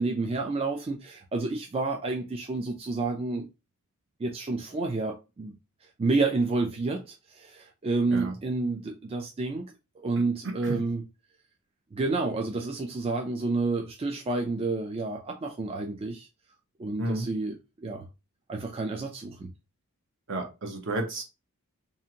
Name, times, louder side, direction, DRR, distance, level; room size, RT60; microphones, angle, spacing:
voice 1, 0.0-3.5 4.2-5.5 6.0-9.6 10.0-11.0 11.9-16.3 16.8-18.1 18.5-19.5, right 3 dB, 25° right, 0.3 m, -29 dB
voice 2, 10.4-10.8 17.0-17.3 20.3-21.2, right 2 dB, 60° right, 0.8 m, -31 dB
2.7 x 2.5 x 2.7 m
head